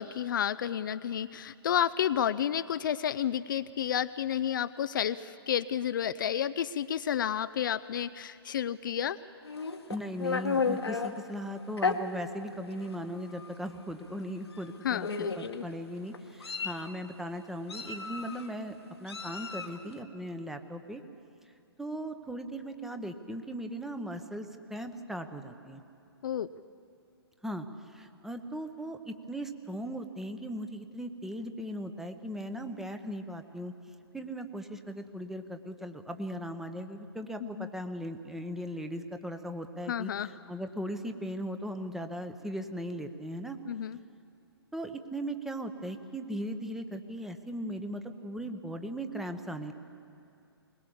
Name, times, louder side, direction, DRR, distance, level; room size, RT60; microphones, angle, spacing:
voice 1, 0.0-9.2 14.8-15.6 26.2-26.5 37.4-37.7 39.9-40.3 43.7-44.0, left 9 dB, 50° left, 13 dB, 0.5 m, -31 dB
Meow, 9.4-11.1 11.8-12.0 12.8-12.9 13.3-13.5 14.5-14.7 15.0-15.5 16.1-16.9 17.7-18.4 19.1-19.8, left 5 dB, 75° left, 1.4 m, -32 dB
voice 2, 9.9-21.0 21.8-25.8 27.4-33.7 34.1-43.6 44.7-49.7, equal, 5° right, 7 dB, 0.9 m, -38 dB
21.5 x 19.5 x 7.1 m, 2.5 s
figure-of-eight pair, 125°, 13 cm